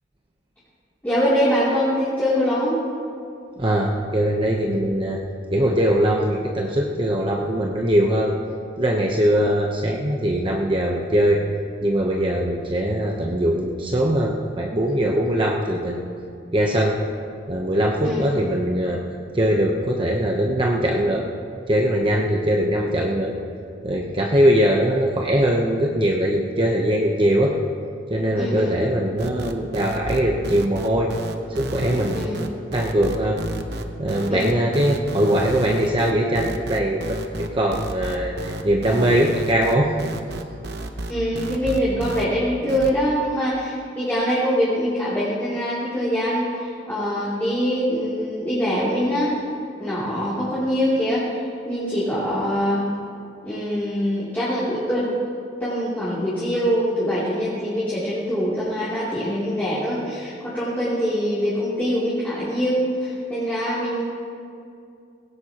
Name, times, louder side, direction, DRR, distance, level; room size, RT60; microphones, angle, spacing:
voice 1, 1.0-2.8 18.0-18.3 28.4-28.8 32.1-32.4 34.3-34.5 41.1-49.3 49.8-52.9 53.4-55.1 55.6-64.0, equal, 10° left, -10 dB, 2.9 m, -23 dB
voice 2, 3.6-5.2 5.5-8.3 8.8-11.4 11.8-16.0 16.5-17.0 17.5-19.0 19.3-21.3 21.7-23.3 23.8-27.6 28.1-31.1 31.6-33.4 34.0-39.9, equal, 30° right, -1 dB, 0.9 m, -21 dB
sound 1, 29.2-42.2 42.7-42.9, right 1 dB, 60° right, 0.9 m, -31 dB
19.0 x 16.5 x 3.0 m, 2.5 s
head